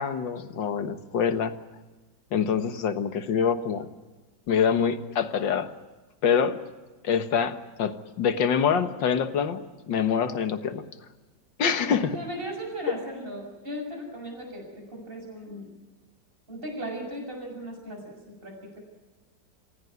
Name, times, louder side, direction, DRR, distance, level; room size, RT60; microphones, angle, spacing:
voice 1, 0.0-1.5 2.3-3.9 4.5-5.7 6.2-6.6 7.0-9.6 9.9-10.8 11.6-12.2, left 7 dB, 85° left, 9 dB, 2.1 m, -25 dB
voice 2, 11.8-15.7 16.5-18.8, equal, 30° right, 2 dB, 6.9 m, -37 dB
26.0 x 17.0 x 9.5 m, 1.2 s
omnidirectional pair, 1.9 m